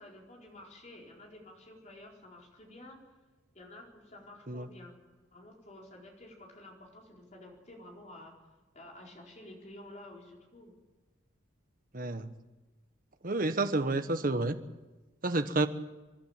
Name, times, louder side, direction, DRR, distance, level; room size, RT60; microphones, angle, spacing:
voice 1, 0.0-3.0 3.5-5.0 5.3-8.3 8.7-10.7, left 1 dB, 35° left, -1 dB, 4.5 m, -51 dB
voice 2, 11.9-12.3 13.2-14.6 15.2-15.7, right 2 dB, 45° right, 8 dB, 1.2 m, -29 dB
27.5 x 11.5 x 8.9 m, 1.2 s
head